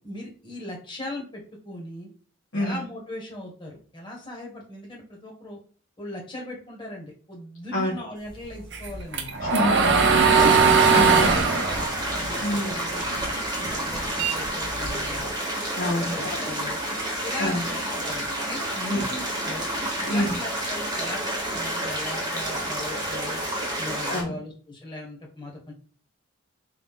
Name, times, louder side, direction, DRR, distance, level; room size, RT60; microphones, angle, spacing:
voice 1, 0.0-2.1 2.5-5.6 6.0-9.8 11.1-11.8 12.1-15.3 15.9-16.8 17.2-19.7 20.0-23.4 23.8-25.7, left 1 dB, 25° left, -2 dB, 1.4 m, -38 dB
voice 2, 2.5-2.8 7.7-8.0 9.4-11.2 12.4-12.7 15.8-16.4 17.4-17.7 18.9-19.0 20.1-20.4 24.1-24.3, left 1 dB, 80° left, -8 dB, 1.4 m, -28 dB
sound 1, 8.7-13.2 13.6-15.2, right 5 dB, 60° right, 0.7 m, -20 dB
sound 2, 10.3-24.2, right 1 dB, 20° right, 1.1 m, -30 dB
4.1 x 2.7 x 3.6 m, 0.42 s
head